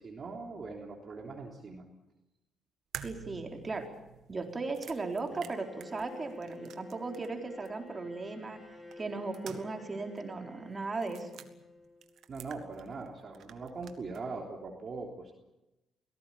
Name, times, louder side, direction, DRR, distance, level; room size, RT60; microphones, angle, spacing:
voice 1, 0.0-1.8 12.3-15.3, right 4 dB, 45° right, 1 dB, 3.5 m, -41 dB
sound 1, 2.9-7.4 7.7-7.8 8.9-9.9 10.2-10.3 11.0-11.5 12.0-13.1 13.3-14.2, right 9 dB, 75° right, 1.8 m, -48 dB
voice 2, 3.0-3.9 4.3-8.6 9.0-11.4, right 3 dB, 30° right, 4 dB, 4.1 m, -37 dB
Bowed string instrument, 5.3-12.2, left 2 dB, 5° left, 7.8 m, -51 dB
23.5 x 17.5 x 8.7 m, 0.94 s
cardioid pair, 90°, 0 cm